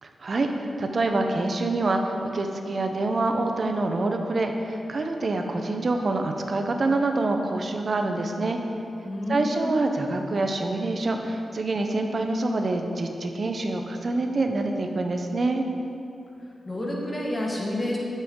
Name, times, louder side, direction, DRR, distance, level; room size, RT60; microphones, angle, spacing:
voice 1, 0.0-8.6 9.3-15.6, right 2 dB, 55° right, 4 dB, 0.7 m, -26 dB
voice 2, 9.0-9.7 16.6-18.0, left 1 dB, 25° left, -3 dB, 1.6 m, -29 dB
7.9 x 6.7 x 3.8 m, 2.7 s
cardioid pair, 70°, 0 cm